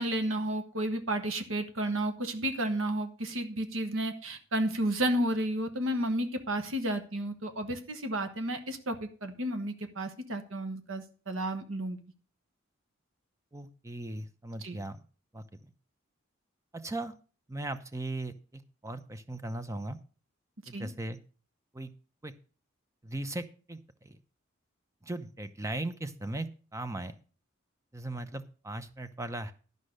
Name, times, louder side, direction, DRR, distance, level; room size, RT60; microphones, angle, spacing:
voice 1, 0.0-12.0 14.6-14.8 20.7-20.9, right 1 dB, 75° right, 7 dB, 1.2 m, -32 dB
voice 2, 13.5-15.0 15.3-15.4 16.7-17.1 17.5-20.0 20.7-21.2 21.7-21.9 22.2-22.3 23.0-24.2 25.0-27.1 27.9-29.5, right 2 dB, 15° right, 11 dB, 0.7 m, -38 dB
12.0 x 5.3 x 6.4 m, 0.39 s
head